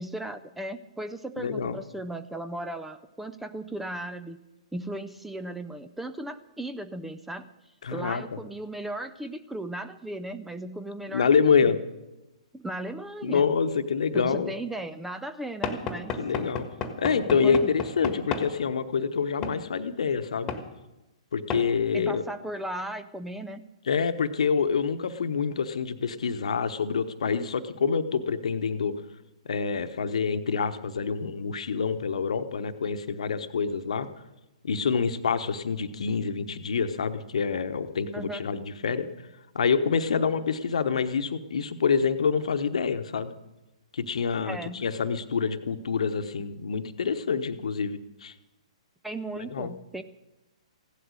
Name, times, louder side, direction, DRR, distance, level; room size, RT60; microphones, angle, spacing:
voice 1, 0.0-4.4 4.7-7.5 7.9-11.8 12.5-13.4 14.1-16.1 17.3-17.7 21.9-23.6 38.1-38.4 44.4-44.9 49.0-50.0, right 1 dB, 5° right, 10 dB, 0.5 m, -36 dB
voice 2, 1.4-1.8 7.8-8.2 11.1-11.8 13.2-14.5 16.2-16.7 17.0-20.5 21.3-22.2 23.9-28.9 29.4-34.1 34.6-39.3 39.5-43.3 43.9-48.3 49.5-49.7, left 6 dB, 65° left, 10 dB, 1.1 m, -26 dB
Knock / Wood, 15.6-18.5 19.4-19.6 20.5-20.7 21.5-21.7, left 5 dB, 20° left, 1.5 m, -32 dB
16.0 x 12.0 x 6.4 m, 0.99 s
figure-of-eight pair, 125°, 4 cm